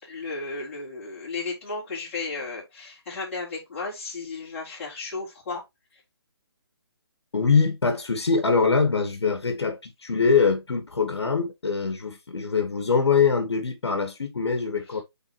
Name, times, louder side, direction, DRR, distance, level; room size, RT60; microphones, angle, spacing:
voice 1, 0.0-5.6 5.9-6.0 14.9-15.0, left 3 dB, 30° left, 4.2 m, -34 dB
voice 2, 7.3-15.0, left 5 dB, 80° left, 1.7 m, -23 dB
8.3 x 4.0 x 3.0 m
hypercardioid pair, 165°, 13 cm